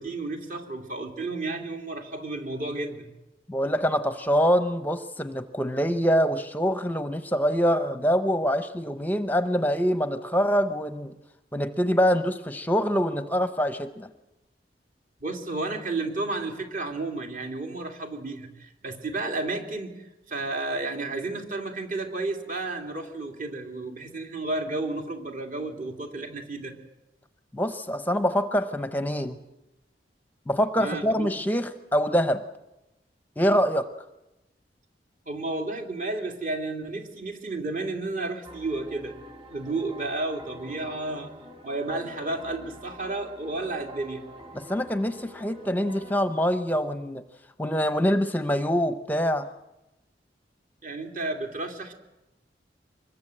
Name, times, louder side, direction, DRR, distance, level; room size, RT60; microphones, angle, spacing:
voice 1, 0.0-3.1 15.2-26.8 30.8-31.3 35.3-39.1 39.5-41.3 41.6-44.2 50.8-51.9, right 2 dB, 50° right, 3 dB, 3.0 m, -32 dB
voice 2, 3.5-11.1 11.5-14.1 27.5-29.4 30.5-32.4 33.4-33.9 44.6-47.2 47.6-49.5, equal, 10° left, 10 dB, 0.8 m, -25 dB
sound 1, 38.4-46.2, right 1 dB, 30° right, 3.6 m, -46 dB
25.0 x 22.0 x 8.0 m, 0.96 s
head